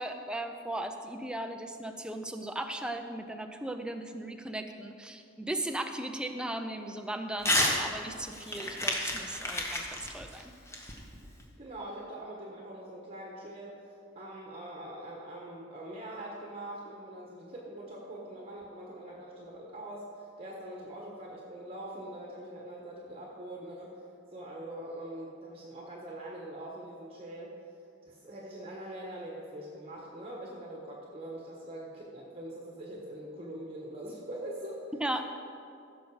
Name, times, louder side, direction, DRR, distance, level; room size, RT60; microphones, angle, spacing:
voice 1, 0.0-10.4 35.0-35.4, right 1 dB, 5° right, 5 dB, 0.5 m, -37 dB
Crumpling crinkling / Tearing, 7.4-7.8 8.1-11.4, left 1 dB, 15° left, 1.1 m, -31 dB
voice 2, 11.6-24.0 24.3-27.6 28.1-35.0, right 1 dB, 30° right, -3 dB, 1.2 m, -43 dB
15.5 x 6.5 x 4.8 m, 2.5 s
head